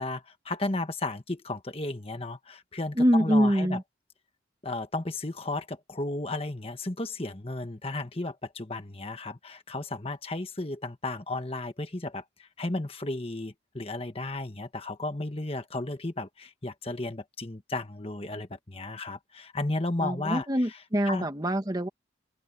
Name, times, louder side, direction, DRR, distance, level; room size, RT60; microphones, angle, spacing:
voice 1, 0.0-3.8 4.6-20.8 21.0-21.3, left 2 dB, 30° left, 1.4 m, -34 dB
voice 2, 3.0-3.8 20.0-21.9, equal, 20° right, 1.6 m, -24 dB
open air
head